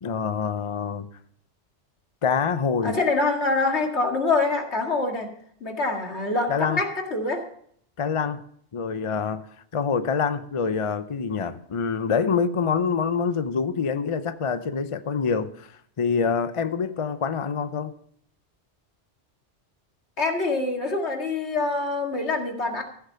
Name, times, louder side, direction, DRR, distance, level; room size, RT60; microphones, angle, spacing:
voice 1, 0.0-1.1 2.2-3.0 6.5-6.8 8.0-8.4 8.7-9.4 9.7-17.9, left 6 dB, 35° left, 0.5 m, -26 dB
voice 2, 2.8-5.3 5.6-7.4 20.2-22.8, left 3 dB, 70° left, 2.4 m, -25 dB
14.5 x 8.1 x 5.7 m
omnidirectional pair, 1.2 m